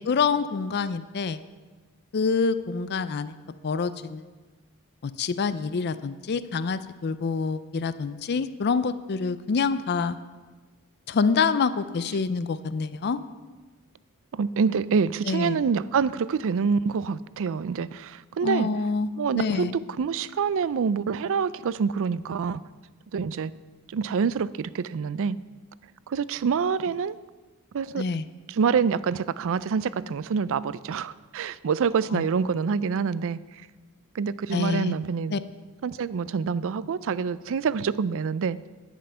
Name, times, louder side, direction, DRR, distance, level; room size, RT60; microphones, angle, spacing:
voice 1, 0.0-1.4 2.1-3.4 3.6-4.2 5.0-10.2 11.1-13.2 15.3-15.6 18.4-19.1 19.3-19.8 28.0-28.2 32.1-32.2 34.5-34.9 35.3-35.4, left 5 dB, 50° left, 13 dB, 0.4 m, -26 dB
voice 2, 14.3-18.7 19.2-19.7 20.0-22.6 23.1-23.5 23.9-25.4 26.1-27.2 27.7-28.0 28.5-33.4 34.1-35.4 35.8-38.6, right 6 dB, 60° right, 18 dB, 0.4 m, -26 dB
10.0 x 10.0 x 5.6 m, 1.3 s
head